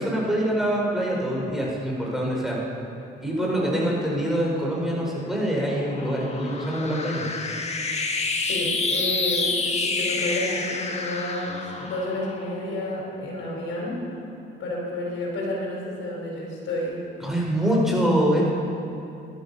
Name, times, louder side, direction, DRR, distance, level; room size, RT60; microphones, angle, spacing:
voice 1, 0.0-2.6 3.2-7.3 17.2-18.5, equal, ahead, -4 dB, 4.9 m, -24 dB
voice 2, 3.3-3.9 7.9-8.0 8.4-14.0 14.6-17.0, left 1 dB, 80° left, -2 dB, 4.6 m, -31 dB
sound 1, 4.9-13.5, left 3 dB, 35° left, 1.6 m, -29 dB
21.0 x 12.0 x 5.7 m, 2.7 s
cardioid pair, 90°, 20 cm